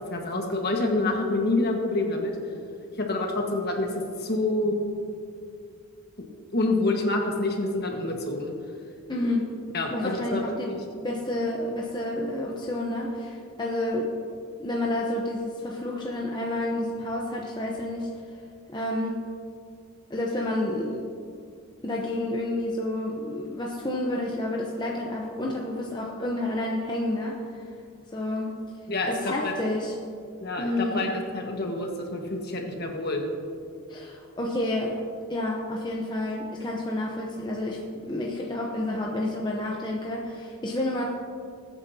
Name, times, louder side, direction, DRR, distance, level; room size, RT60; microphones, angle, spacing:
voice 1, 0.1-2.3 3.0-3.9 4.2-4.7 6.5-8.5 9.7-10.8 28.9-29.5 30.4-33.2, left 2 dB, 45° left, 1 dB, 1.5 m, -27 dB
voice 2, 9.1-9.4 9.9-10.7 11.0-14.1 14.6-18.1 18.7-19.2 20.1-21.0 21.8-27.6 28.1-28.5 29.0-29.9 30.6-31.1 33.9-35.0 35.3-41.1, left 1 dB, 20° left, -2 dB, 0.8 m, -29 dB
21.0 x 9.0 x 2.8 m, 2.4 s
head